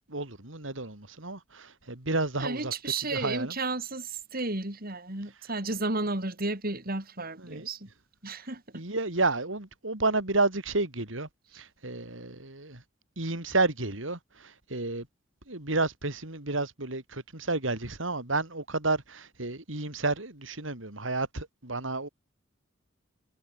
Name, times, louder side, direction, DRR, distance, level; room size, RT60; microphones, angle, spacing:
voice 1, 0.1-2.7 3.1-3.5 7.4-7.7 8.7-11.3 11.5-12.8 13.2-15.1 15.5-22.1, right 3 dB, 80° right, 4.3 m, -31 dB
voice 2, 2.4-7.9 8.2-8.8, right 3 dB, 50° right, 4.4 m, -33 dB
head